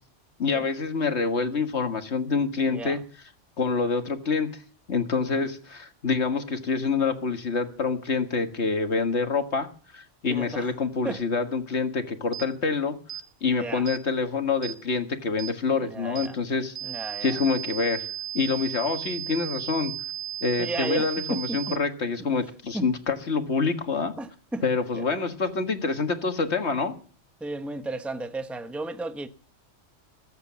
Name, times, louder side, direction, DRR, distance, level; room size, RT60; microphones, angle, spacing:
voice 1, 0.4-3.0 3.6-4.6 4.9-9.7 9.9-13.0 13.4-16.8 17.2-18.1 18.3-19.9 20.4-24.1 24.6-26.9, left 4 dB, 65° left, 2.0 m, -26 dB
voice 2, 2.6-3.0 5.3-5.5 10.3-10.7 11.0-11.2 13.4-13.8 15.7-16.3 16.8-17.4 20.6-21.8 22.7-22.9 24.2-24.6 24.9-25.0 27.4-29.3, right 2 dB, ahead, 1.0 m, -34 dB
sound 1, 12.3-12.5 13.1-13.3 13.9-14.0 14.6-14.8 15.4-15.5 16.2-16.3 16.8-21.8, right 11 dB, 40° right, 1.1 m, -35 dB
22.0 x 8.3 x 7.2 m
omnidirectional pair, 1.2 m